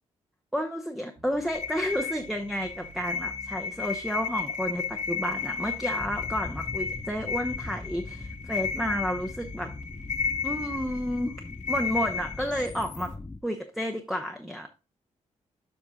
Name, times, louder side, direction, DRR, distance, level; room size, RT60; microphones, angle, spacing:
voice 1, 0.5-9.7 10.4-11.4 11.7-13.1 13.4-14.9, equal, ahead, 3 dB, 0.8 m, -31 dB
Bass guitar, 1.1-10.7, right 2 dB, 35° right, 1.6 m, -51 dB
sound 1, 1.5-13.1, left 5 dB, 80° left, 1.0 m, -34 dB
sound 2, 6.0-13.4, left 3 dB, 15° left, 0.4 m, -41 dB
7.5 x 5.4 x 3.7 m, 0.31 s
cardioid pair, 110°, 12 cm